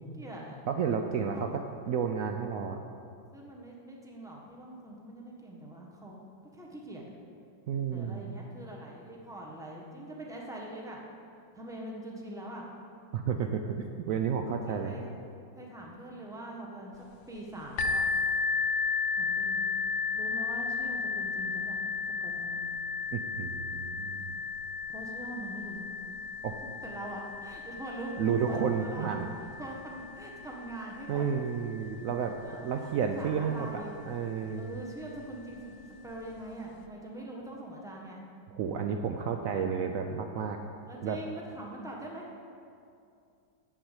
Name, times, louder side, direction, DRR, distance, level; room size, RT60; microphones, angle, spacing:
voice 1, 0.1-0.6 1.2-1.8 3.3-6.2 6.5-7.1 7.9-11.0 11.5-12.6 14.5-15.1 15.6-18.1 19.1-19.7 20.1-21.8 22.2-22.7 24.9-25.9 26.8-29.1 29.4-31.3 32.4-33.9 34.6-35.8 36.0-38.2 40.9-42.2, right 1 dB, ahead, -2 dB, 1.0 m, -43 dB
voice 2, 0.7-2.8 7.7-8.4 13.1-14.9 23.1-24.4 26.4-26.6 28.2-29.3 31.1-34.8 38.5-40.6 41.0-41.2, right 7 dB, 85° right, 4 dB, 0.7 m, -31 dB
sound 1, 17.8-33.3 34.1-34.2 34.7-34.8, left 5 dB, 70° left, 1.2 m, -34 dB
7.4 x 7.0 x 8.2 m, 2.5 s
omnidirectional pair, 2.0 m